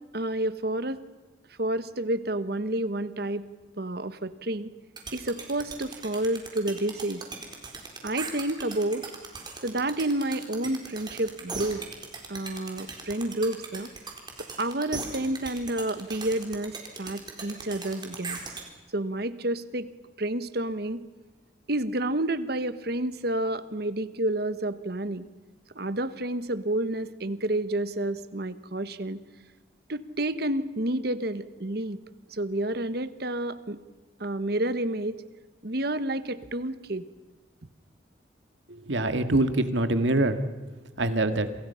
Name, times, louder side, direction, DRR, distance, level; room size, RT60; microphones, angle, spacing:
voice 1, 0.1-1.0 1.6-3.5 3.8-4.7 5.1-7.2 8.0-9.1 9.6-11.8 12.3-13.9 14.6-18.4 18.9-19.9 20.2-21.0 21.7-25.3 25.7-29.2 29.9-32.0 32.3-33.8 34.2-35.2 35.6-37.1, right 1 dB, 55° right, 13 dB, 1.1 m, -29 dB
sound 1, 5.0-18.6, right 4 dB, 25° right, 4.0 m, -38 dB
voice 2, 38.9-40.4 41.0-41.5, right 2 dB, 75° right, 9 dB, 1.9 m, -24 dB
28.5 x 27.0 x 5.7 m, 1.2 s
head